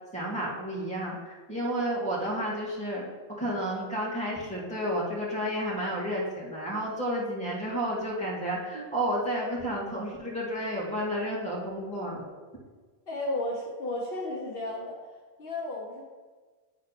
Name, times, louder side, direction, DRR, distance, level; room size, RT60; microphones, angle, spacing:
voice 1, 0.1-1.2 1.5-3.0 3.4-12.2, equal, 5° left, -7 dB, 2.4 m, -31 dB
voice 2, 13.1-15.0 15.4-16.0, left 1 dB, 65° left, -2 dB, 1.4 m, -33 dB
10.5 x 4.2 x 4.2 m, 1.4 s
omnidirectional pair, 1.0 m